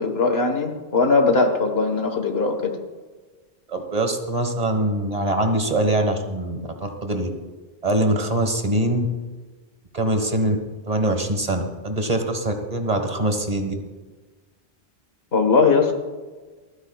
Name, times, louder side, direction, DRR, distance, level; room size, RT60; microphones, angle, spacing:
voice 1, 0.0-2.8 15.3-15.9, left 4 dB, 75° left, 5 dB, 1.7 m, -20 dB
voice 2, 3.7-7.3 7.8-9.1 9.9-10.6 10.9-13.7, right 1 dB, 40° right, 5 dB, 1.5 m, -23 dB
29.0 x 10.0 x 2.3 m, 1.3 s
omnidirectional pair, 1.0 m